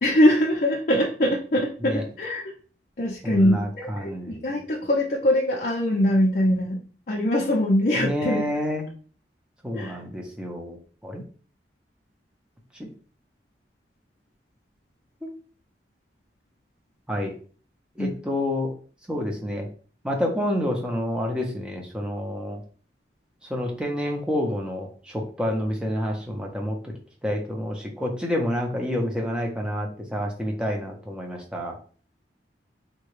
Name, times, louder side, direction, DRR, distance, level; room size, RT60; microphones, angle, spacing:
voice 1, 0.0-2.5 3.0-6.8 7.1-8.4 9.7-10.0 18.0-18.1, left 1 dB, 50° left, -3 dB, 0.5 m, -22 dB
voice 2, 3.2-4.6 7.9-8.9 9.6-10.8 11.0-11.2 12.8-12.9 15.2-15.3 17.1-17.3 18.0-18.7 19.1-19.7 20.0-22.6 23.5-26.9 27.2-31.8, left 1 dB, 5° right, 0 dB, 0.6 m, -28 dB
3.7 x 2.2 x 3.1 m, 0.42 s
head